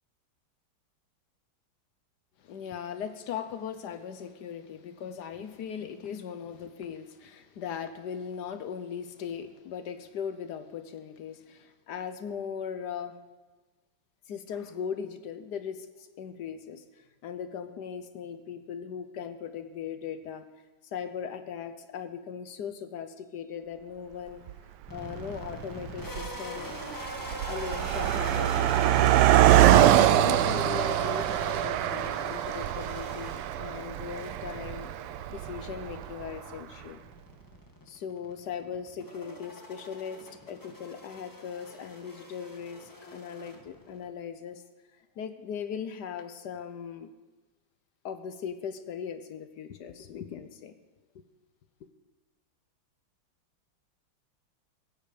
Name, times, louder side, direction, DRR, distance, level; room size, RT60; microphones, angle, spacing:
voice 1, 2.4-13.2 14.3-20.4 20.8-24.4 24.9-26.7 27.5-28.7 29.5-34.9 35.3-37.0 37.9-44.6 45.2-47.1 48.0-50.7 51.1-51.2, left 7 dB, 65° left, 9 dB, 1.2 m, -39 dB
Car passing by, 24.5-24.6 25.4-25.6 25.9-36.3, right 12 dB, 90° right, 1.6 m, -24 dB
sound 1, 24.9-44.1, equal, 10° left, 1.1 m, -43 dB
21.0 x 9.1 x 5.1 m, 1.2 s
omnidirectional pair, 2.4 m